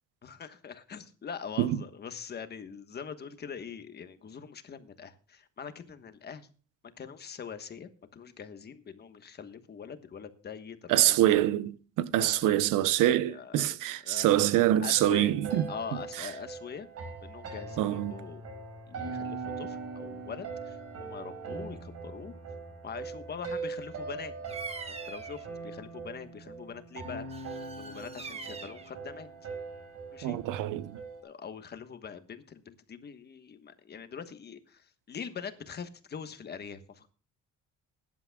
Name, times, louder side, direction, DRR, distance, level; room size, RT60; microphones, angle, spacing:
voice 1, 0.2-6.5 7.0-11.2 12.2-13.8 14.0-14.3 14.8-15.3 15.7-16.9 17.2-18.4 18.9-22.3 22.8-24.3 24.9-27.3 27.7-29.3 30.1-30.4 31.2-37.1, left 6 dB, 30° left, 1.3 m, -43 dB
voice 2, 10.9-15.7 16.2-16.3 17.8-18.1 30.2-31.0, right 13 dB, 90° right, 0.9 m, -25 dB
sound 1, 14.8-31.2, right 4 dB, 50° right, 5.9 m, -41 dB
Bird vocalization bird call bird song, 24.4-25.4 27.3-28.9, right 4 dB, 20° right, 1.2 m, -43 dB
21.5 x 11.0 x 2.3 m
cardioid pair, 165°, 31 cm